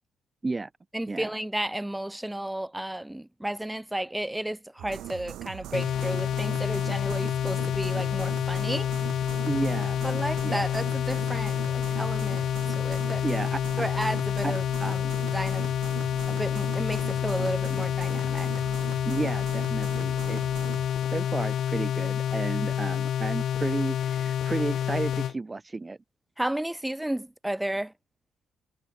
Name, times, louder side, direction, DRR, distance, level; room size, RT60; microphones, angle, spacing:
voice 1, 0.9-8.9 10.0-13.3 13.8-15.7 16.3-18.5 26.4-27.9, right 1 dB, 5° right, 2.6 m, -33 dB
sound 1, 4.8-20.9, right 13 dB, 80° right, 4.2 m, -40 dB
sound 2, 5.7-25.3, left 10 dB, 65° left, 1.4 m, -28 dB
voice 2, 9.5-10.0 10.4-10.6 13.2-13.6 14.4-14.5 19.1-20.4 21.1-26.0, right 3 dB, 20° right, 0.6 m, -32 dB
cardioid pair, 90°, 0 cm